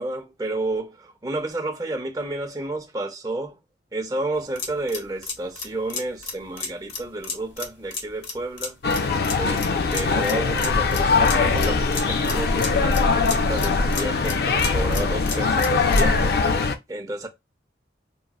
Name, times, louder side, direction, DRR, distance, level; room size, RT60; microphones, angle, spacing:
voice 1, 0.0-3.6 3.9-8.8 9.4-16.3 16.9-17.3, right 2 dB, 20° right, 0.5 m, -31 dB
sound 1, 4.3-16.2, left 5 dB, 75° left, 0.7 m, -34 dB
sound 2, 8.8-16.8, left 4 dB, 55° left, 0.3 m, -21 dB
3.7 x 2.1 x 2.3 m
head